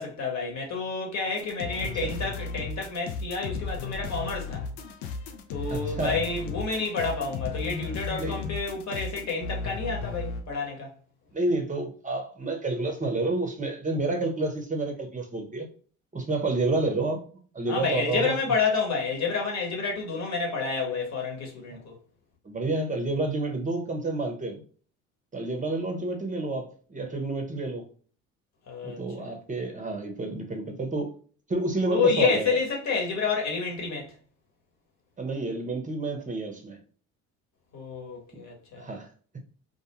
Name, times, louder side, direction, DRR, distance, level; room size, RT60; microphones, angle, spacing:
voice 1, 0.0-4.7 5.5-10.9 17.7-22.0 28.7-29.3 31.9-34.1 37.7-38.9, left 4 dB, 45° left, 1.2 m, -29 dB
sound 1, 1.4-10.4, left 4 dB, 65° left, 0.6 m, -35 dB
voice 2, 5.7-6.2 8.2-8.4 11.3-15.7 16.1-17.2 17.5-18.4 22.4-24.6 25.3-27.8 28.8-31.1 31.5-32.6 35.2-36.8 38.8-39.1, right 2 dB, 20° right, 0.8 m, -29 dB
2.3 x 2.2 x 2.9 m
hypercardioid pair, 60°, 38 cm